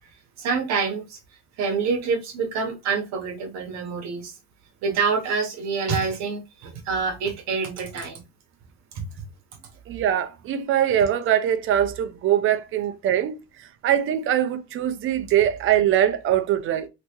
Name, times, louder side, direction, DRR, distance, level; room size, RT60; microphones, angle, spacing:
voice 1, 0.4-1.2 1.6-4.4 4.8-8.2 8.9-9.1, right 5 dB, 60° right, 1.0 m, -26 dB
voice 2, 9.9-13.4 13.8-16.9, right 10 dB, 45° right, 0.5 m, -22 dB
3.4 x 2.9 x 2.9 m
cardioid pair, 155°, 30 cm